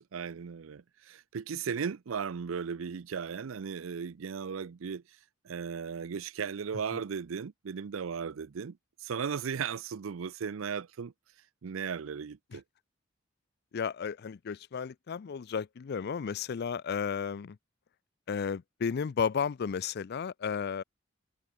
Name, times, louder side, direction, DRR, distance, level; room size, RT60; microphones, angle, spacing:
voice 1, 0.0-5.0 5.4-11.1 11.6-12.6, right 6 dB, 85° right, 0.5 m, -36 dB
voice 2, 13.7-17.6 18.3-20.8, left 6 dB, 55° left, 0.4 m, -33 dB
head